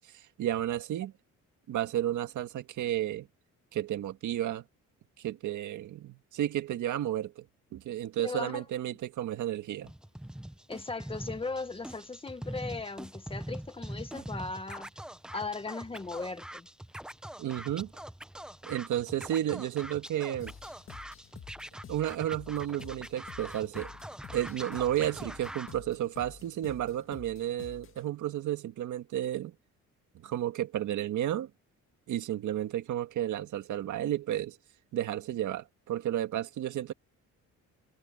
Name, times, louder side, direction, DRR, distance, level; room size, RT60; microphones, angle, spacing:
voice 1, 0.1-1.1 1.7-3.3 3.7-4.6 5.2-7.5 7.7-9.9 17.4-17.9 18.7-20.5 21.9-23.9 24.3-29.5 30.2-31.5 32.1-34.6 34.9-36.9, right 12 dB, 70° right, 1.9 m, -32 dB
voice 2, 8.2-8.6 10.7-14.9 15.3-16.7, left 3 dB, 15° left, 1.5 m, -37 dB
Scratching (performance technique), 9.8-25.7, right 1 dB, ahead, 0.8 m, -43 dB
sound 1, 20.4-28.1, left 8 dB, 40° left, 2.0 m, -50 dB
cardioid pair, 145°, 31 cm